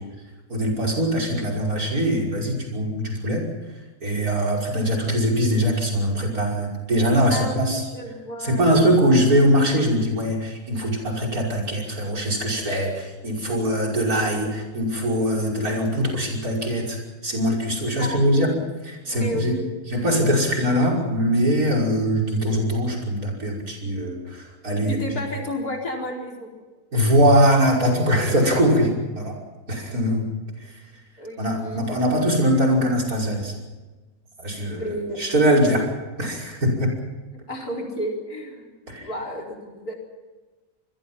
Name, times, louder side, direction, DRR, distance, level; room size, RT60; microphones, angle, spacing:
voice 1, 0.5-3.5 4.0-7.8 8.4-18.5 18.8-19.6 19.9-25.0 26.9-29.4 29.7-30.3 30.6-30.7 31.4-33.5 34.4-34.8 35.2-35.9 36.2-36.9 38.9-39.1, equal, 80° right, 2 dB, 6.2 m, -22 dB
voice 2, 7.3-9.2 18.0-18.6 19.1-19.7 24.9-26.5 31.2-31.9 34.7-35.3 37.5-39.9, equal, 85° left, 0 dB, 5.1 m, -32 dB
27.0 x 21.5 x 5.9 m, 1.2 s
omnidirectional pair, 1.5 m